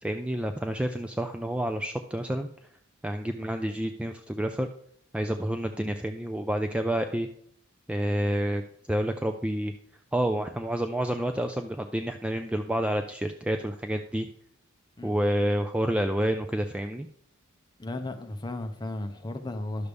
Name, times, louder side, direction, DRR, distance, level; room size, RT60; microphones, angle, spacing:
voice 1, 0.0-2.5 3.0-4.7 5.1-7.3 7.9-8.6 8.9-9.7 10.1-14.3 15.0-17.1, right 1 dB, 5° right, 0.3 m, -29 dB
voice 2, 17.8-19.9, left 2 dB, 20° left, 0.7 m, -35 dB
11.0 x 6.6 x 3.4 m
head